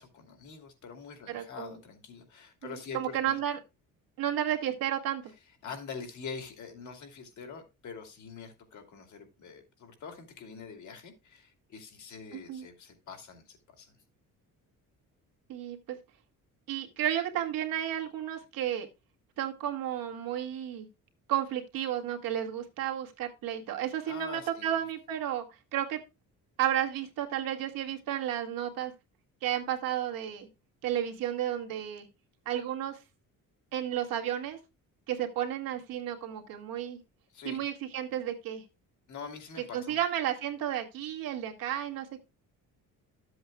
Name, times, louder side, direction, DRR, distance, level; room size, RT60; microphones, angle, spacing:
voice 1, 0.0-3.4 5.6-14.0 24.1-24.8 37.3-37.6 39.1-40.0, left 5 dB, 60° left, 2.5 m, -45 dB
voice 2, 1.3-1.8 2.6-3.6 4.2-5.2 12.3-12.7 15.5-16.0 16.7-18.9 19.4-20.9 21.3-25.4 25.7-26.0 26.6-28.9 29.4-30.5 30.8-32.1 32.5-33.0 33.7-34.6 35.1-37.0 37.5-38.6 39.7-42.2, right 11 dB, 85° right, 1.9 m, -32 dB
12.5 x 7.8 x 2.3 m
cardioid pair, 130°, 33 cm